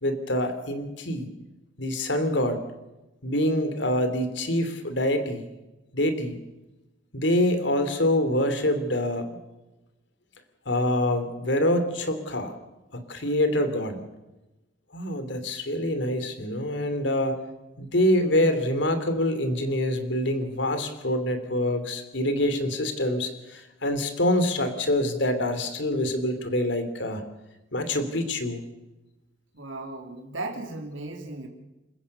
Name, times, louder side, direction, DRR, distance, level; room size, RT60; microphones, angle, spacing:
voice 1, 0.0-1.3 1.8-2.6 3.2-5.5 5.9-6.4 7.1-9.3 10.6-12.5 13.1-14.0 14.9-17.4 17.8-27.2 27.7-28.6, left 1 dB, 65° left, 9 dB, 3.2 m, -25 dB
voice 2, 29.5-31.5, right 2 dB, 80° right, 2 dB, 3.1 m, -36 dB
29.0 x 15.5 x 6.8 m, 1.0 s
head